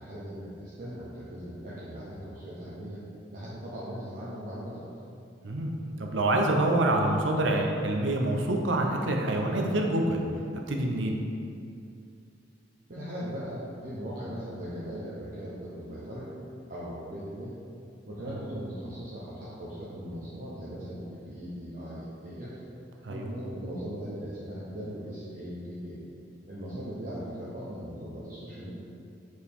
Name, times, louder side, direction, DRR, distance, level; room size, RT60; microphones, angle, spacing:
voice 1, 0.0-3.0 3.3-4.9 12.9-16.3 16.7-17.6 18.0-22.6 23.1-26.0 26.5-28.7, equal, 50° right, -9 dB, 0.9 m, -39 dB
voice 2, 6.0-10.2 10.7-11.2 18.3-18.4 23.0-23.3, right 1 dB, 80° right, 2 dB, 0.7 m, -26 dB
6.7 x 4.7 x 3.6 m, 2.5 s
head